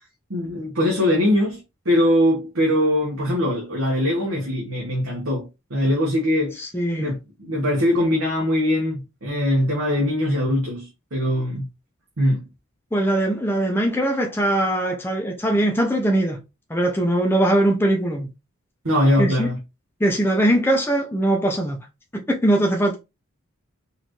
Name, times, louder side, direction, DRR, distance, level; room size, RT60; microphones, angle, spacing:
voice 1, 0.3-6.6 7.0-11.7 12.2-12.4 18.8-19.6, left 1 dB, 70° right, 1.1 m, -22 dB
voice 2, 6.6-7.1 12.9-16.4 16.7-18.3 19.2-19.5 20.0-21.8 22.3-23.0, right 1 dB, 10° left, 0.6 m, -21 dB
4.2 x 2.6 x 3.0 m
head